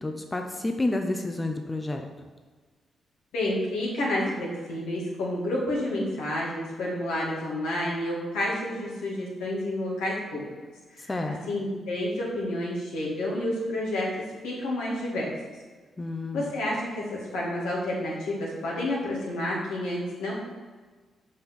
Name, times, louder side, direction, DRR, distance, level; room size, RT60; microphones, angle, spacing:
voice 1, 0.0-2.1 11.1-11.4 16.0-16.5, left 2 dB, 25° left, 4 dB, 0.8 m, -30 dB
voice 2, 3.3-10.4 10.9-14.1 14.4-15.3 16.3-20.3, left 1 dB, 90° left, -5 dB, 2.2 m, -30 dB
5.7 x 5.3 x 6.2 m, 1.4 s
supercardioid pair, 55°, 0 cm